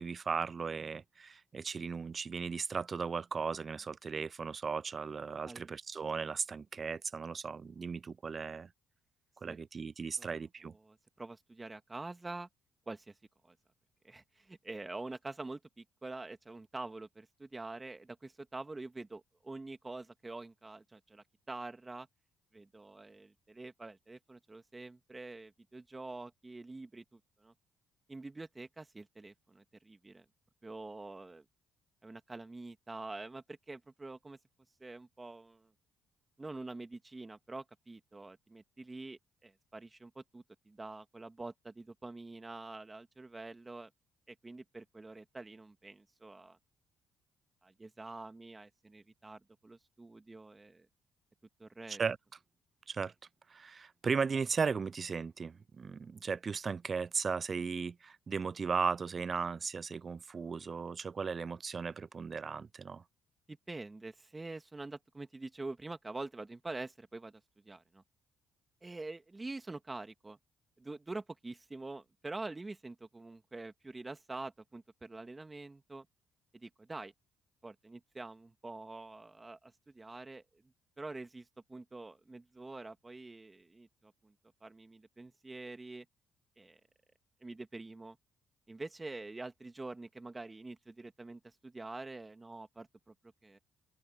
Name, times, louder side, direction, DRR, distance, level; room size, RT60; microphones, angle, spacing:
voice 1, 0.0-8.7 9.4-10.7 51.9-52.2 52.9-53.1 53.5-63.0, right 5 dB, 40° right, 0.3 m, -36 dB
voice 2, 10.8-12.5 12.9-13.1 13.4-13.6 14.0-22.1 22.5-27.5 28.1-30.3 30.6-31.5 32.0-34.4 34.8-35.7 36.4-43.9 44.3-46.6 47.6-50.9 51.6-52.0 63.5-68.0 68.8-70.4 70.8-76.1 76.5-77.1 77.6-80.4 81.0-84.3 84.6-86.1 86.6-86.8 87.4-88.2 88.7-93.1 93.4-93.6, right 2 dB, 20° right, 2.2 m, -46 dB
open air
supercardioid pair, 65°, 0 cm